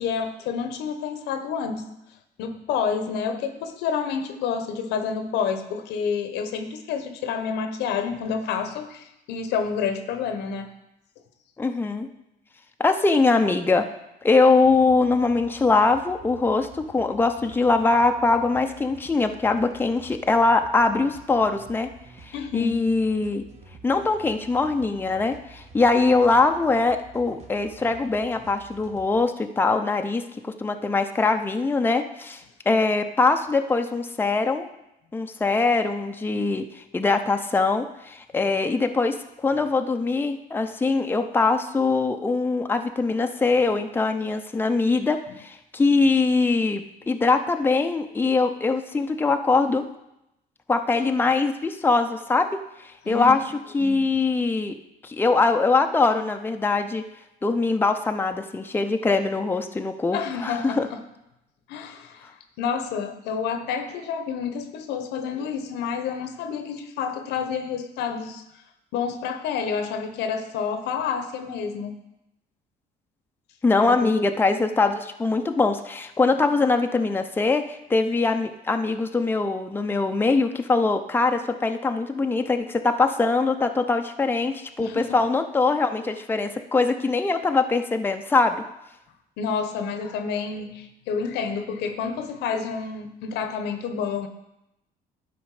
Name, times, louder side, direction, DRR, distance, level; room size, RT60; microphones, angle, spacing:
voice 1, 0.0-1.9 2.4-10.7 22.3-22.8 53.0-53.3 53.8-54.0 60.1-61.0 61.7-68.4 68.9-72.0 74.0-74.2 84.8-85.2 89.4-94.3, left 6 dB, 85° left, 9 dB, 1.0 m, -29 dB
voice 2, 11.6-12.1 12.8-13.9 14.2-21.9 22.2-23.4 23.8-30.2 30.6-32.4 32.7-34.7 35.1-39.2 39.4-49.8 50.7-53.4 53.7-54.8 55.0-57.0 57.4-60.9 73.6-88.6, left 3 dB, 10° left, 6 dB, 0.6 m, -22 dB
sound 1, 14.6-29.2, right 4 dB, 40° right, 1.4 m, -48 dB
11.5 x 5.1 x 4.9 m, 0.88 s
cardioid pair, 110°, 17 cm